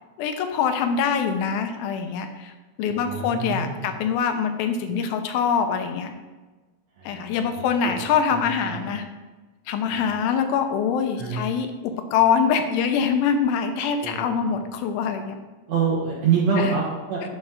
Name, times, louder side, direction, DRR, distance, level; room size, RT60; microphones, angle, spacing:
voice 1, 0.2-2.5 2.8-6.1 7.0-9.1 9.7-15.4 16.6-16.7, left 6 dB, 85° left, 7 dB, 2.4 m, -24 dB
voice 2, 2.9-3.9 7.0-7.9 8.3-8.8 9.8-10.0 11.2-11.5 14.0-14.2 15.7-17.2, right 5 dB, 60° right, -4 dB, 1.8 m, -26 dB
10.5 x 4.4 x 3.7 m, 1.2 s
omnidirectional pair, 4.2 m